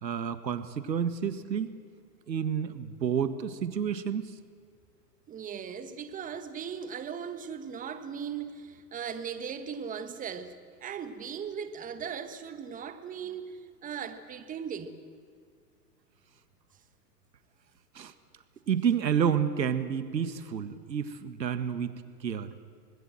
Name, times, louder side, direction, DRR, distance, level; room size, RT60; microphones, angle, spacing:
voice 1, 0.0-1.7 2.3-4.3 18.0-18.1 18.7-22.5, right 8 dB, 85° right, 1.8 m, -30 dB
voice 2, 5.3-10.5 10.8-15.0, right 7 dB, 15° right, 1.5 m, -38 dB
25.5 x 19.5 x 7.8 m
hypercardioid pair, 125°, 50 cm